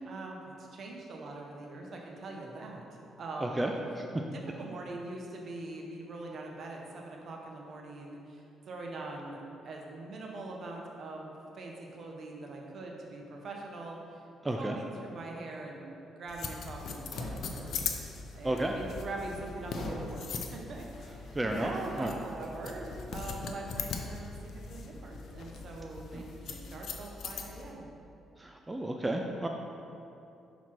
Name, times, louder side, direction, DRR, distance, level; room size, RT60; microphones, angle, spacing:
voice 1, 0.0-3.6 4.6-14.2 14.6-15.8 16.2-17.7 18.3-27.9, right 2 dB, 55° right, 0 dB, 1.0 m, -42 dB
voice 2, 3.4-4.1 14.4-14.8 18.4-18.7 21.3-22.1 26.1-26.2 28.4-29.5, right 1 dB, 15° right, 2 dB, 0.4 m, -32 dB
sound 1, 16.3-27.7, left 5 dB, 65° left, 0.5 m, -41 dB
sound 2, 17.1-17.9 19.7-20.2 20.9-21.3, left 1 dB, 85° left, 1.4 m, -42 dB
5.8 x 4.1 x 4.6 m, 2.7 s
cardioid pair, 90°, 0 cm